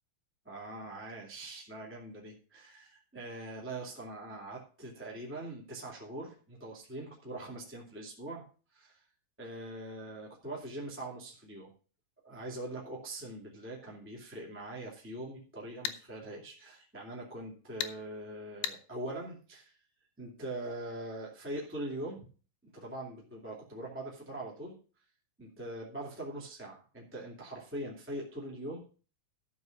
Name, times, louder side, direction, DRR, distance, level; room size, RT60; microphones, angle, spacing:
voice 1, 0.4-8.4 8.7-9.0 9.4-11.7 12.2-19.8 20.2-22.2 22.7-24.8 25.4-28.8, right 1 dB, 5° right, -3 dB, 1.8 m, -42 dB
sound 1, 15.8-16.0 17.8-18.0 18.6-18.8, left 11 dB, 80° left, 2.5 m, -34 dB
13.5 x 5.3 x 5.9 m, 0.39 s
omnidirectional pair, 4.1 m